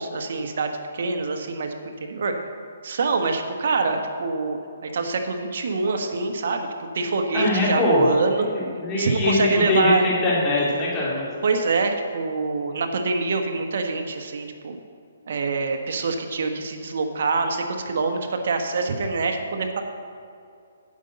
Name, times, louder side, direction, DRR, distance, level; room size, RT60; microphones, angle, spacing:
voice 1, 0.0-2.3 2.8-8.5 8.9-10.0 11.4-14.8 15.3-19.8, right 4 dB, 60° right, 5 dB, 1.2 m, -25 dB
voice 2, 7.3-8.0 8.5-9.3 9.7-11.2, left 2 dB, 20° left, -6 dB, 2.6 m, -22 dB
8.9 x 5.3 x 7.8 m, 2.4 s
hypercardioid pair, 155°, 0 cm